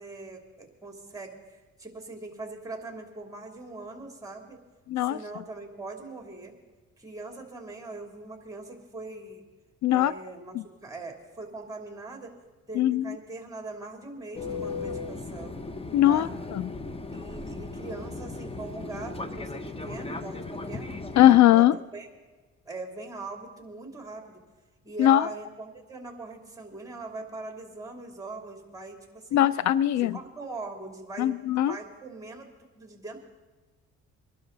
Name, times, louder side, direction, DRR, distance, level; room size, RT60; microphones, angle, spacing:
voice 1, 0.0-4.6 5.0-6.5 7.0-9.4 9.9-12.3 12.7-15.5 16.0-16.3 17.1-20.4 20.6-21.0 21.5-22.1 22.6-24.4 24.8-29.5 29.9-31.4 31.7-32.5 32.7-33.2, right 3 dB, 10° right, 3 dB, 2.9 m, -41 dB
voice 2, 4.9-5.2 9.8-10.1 10.5-10.6 12.8-13.1 15.9-16.7 21.2-21.7 25.0-25.3 29.3-30.2 31.2-31.8, left 12 dB, 70° left, 18 dB, 0.4 m, -20 dB
Fixed-wing aircraft airplane, 14.3-21.4, left 3 dB, 20° left, 1.0 m, -36 dB
23.0 x 12.0 x 4.0 m, 1.3 s
cardioid pair, 90°, 30 cm